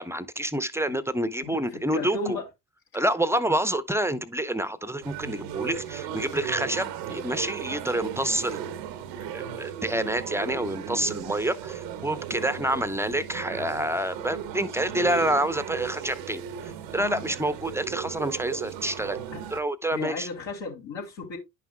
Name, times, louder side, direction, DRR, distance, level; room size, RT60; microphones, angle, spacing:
voice 1, 0.0-2.4 2.9-8.8 9.3-19.2 19.5-20.3, right 1 dB, 5° right, 0.7 m, -28 dB
voice 2, 1.4-2.5 12.6-12.9 19.3-19.4 19.9-21.4, left 3 dB, 65° left, 3.2 m, -35 dB
sound 1, 5.0-19.6, right 9 dB, 80° right, 1.0 m, -36 dB
10.5 x 5.7 x 2.3 m
hypercardioid pair, 50°, 49 cm